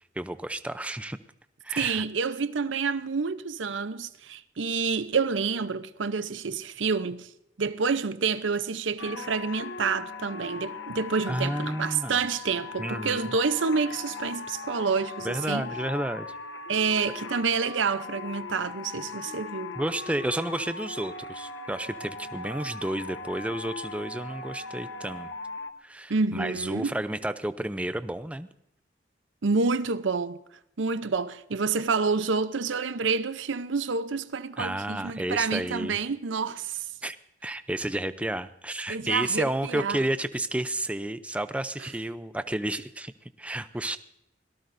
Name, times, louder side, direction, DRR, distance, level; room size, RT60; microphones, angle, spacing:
voice 1, 0.2-1.2 1.6-2.0 11.3-12.2 12.8-13.3 15.2-16.3 19.8-25.3 25.8-28.5 34.6-36.0 37.0-37.2 37.4-43.1 43.4-44.0, right 1 dB, 5° right, 0.5 m, -31 dB
voice 2, 1.8-7.3 7.6-15.7 16.7-19.8 26.1-27.0 29.4-30.4 30.8-36.9 38.9-40.0, right 5 dB, 80° right, 0.7 m, -28 dB
sound 1, 9.0-25.7, left 4 dB, 80° left, 1.1 m, -39 dB
24.5 x 18.0 x 2.6 m
head